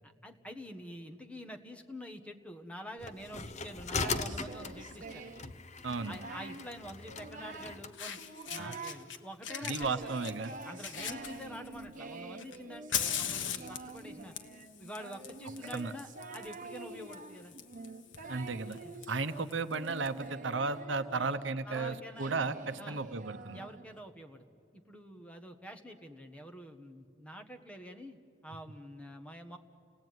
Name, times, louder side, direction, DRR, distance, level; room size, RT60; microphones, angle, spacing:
voice 1, 0.0-5.3 6.1-8.2 8.5-10.1 10.6-14.3 14.8-16.1 16.3-17.5 18.8-18.9 21.1-21.3 21.7-22.3 22.8-23.1 23.5-24.5 24.7-29.6, equal, 5° left, 5 dB, 1.4 m, -47 dB
sound 1, 3.0-7.9, left 4 dB, 40° left, 0.8 m, -39 dB
Singing, 4.0-5.5 5.9-6.7 7.0-7.8 8.2-9.0 9.5-24.0, right 3 dB, 45° right, 1.2 m, -47 dB
Fire, 4.9-5.1 6.6-6.7 7.6-7.7 7.9-9.2 9.4-11.8 12.4-20.1, left 8 dB, 75° left, 1.4 m, -40 dB
voice 2, 5.8-6.2 8.6-8.8 9.6-10.5 15.7-15.9 18.3-18.8 19.1-23.6, right 4 dB, 70° right, 11 dB, 0.9 m, -34 dB
29.5 x 18.0 x 9.4 m, 2.5 s
head